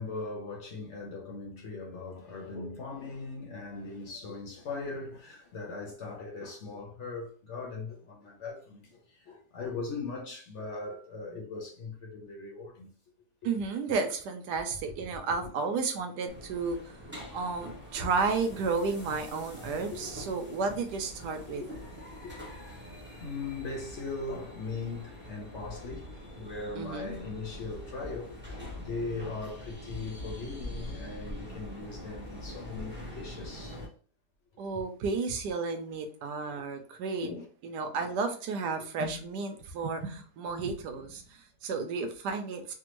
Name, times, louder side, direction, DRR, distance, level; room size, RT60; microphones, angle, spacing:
voice 1, 0.0-12.9 16.3-16.4 17.3-17.4 19.9-20.1 20.5-20.6 21.5-33.8 34.7-34.9 37.2-37.5 37.9-38.1, left 3 dB, 60° left, 0.8 m, -40 dB
voice 2, 13.4-16.9 17.3-21.6 26.7-27.1 34.6-37.3 37.6-42.7, right 4 dB, 85° right, 1.2 m, -32 dB
sound 1, 16.3-33.9, equal, 10° right, 0.5 m, -44 dB
3.4 x 2.2 x 2.9 m
omnidirectional pair, 1.7 m